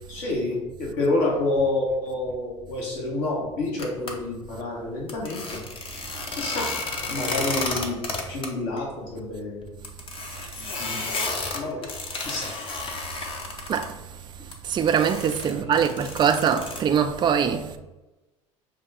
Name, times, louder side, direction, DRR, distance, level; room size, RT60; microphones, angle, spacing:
voice 1, 0.1-5.6 6.3-6.7 7.1-8.0 8.3-9.8 10.6-11.2 11.5-11.9 12.2-12.5 15.7-15.8, left 2 dB, 65° left, 1.4 m, -28 dB
sound 1, 3.8-4.1 5.1-8.5 8.8-8.9 9.2-9.3 9.8-13.9 14.5-16.8, left 3 dB, 35° left, 0.8 m, -32 dB
voice 2, 14.6-17.7, right 7 dB, 30° right, 0.4 m, -22 dB
5.7 x 2.4 x 3.4 m
hypercardioid pair, 70°, 16 cm